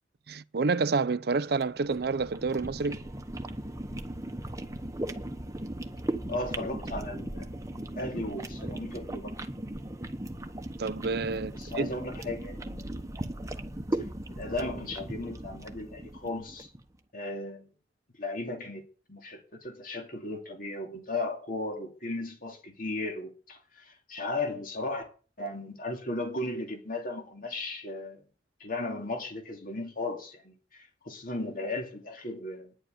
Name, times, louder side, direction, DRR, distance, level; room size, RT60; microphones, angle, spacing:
voice 1, 0.3-3.0 10.8-11.9, right 4 dB, 65° right, 0.6 m, -29 dB
sound 1, 1.6-16.8, right 1 dB, 20° right, 1.1 m, -38 dB
voice 2, 6.3-7.5 8.0-9.3 11.5-13.1 14.3-16.7 17.1-17.7 18.2-18.8 19.1-25.1 25.4-28.2 28.6-32.7, left 2 dB, 50° left, 2.7 m, -36 dB
10.0 x 7.9 x 9.1 m
head